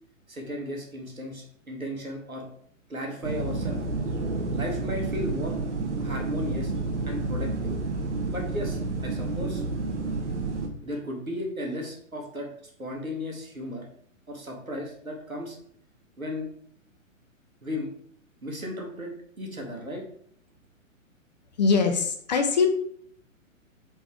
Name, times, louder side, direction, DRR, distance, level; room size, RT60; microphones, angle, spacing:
voice 1, 0.3-2.4 2.9-3.8 4.5-5.6 6.0-6.7 7.0-7.8 8.3-9.6 10.8-12.5 12.8-13.9 14.3-15.6 16.2-16.5 17.6-17.9 18.4-19.1 19.4-20.0, left 1 dB, 90° right, 1 dB, 1.3 m, -35 dB
sound 1, 3.2-10.7, right 3 dB, 60° right, 0.9 m, -30 dB
voice 2, 21.6-22.7, left 5 dB, 35° left, 6 dB, 0.5 m, -22 dB
4.0 x 3.4 x 3.5 m, 0.63 s
figure-of-eight pair, 115°, 41 cm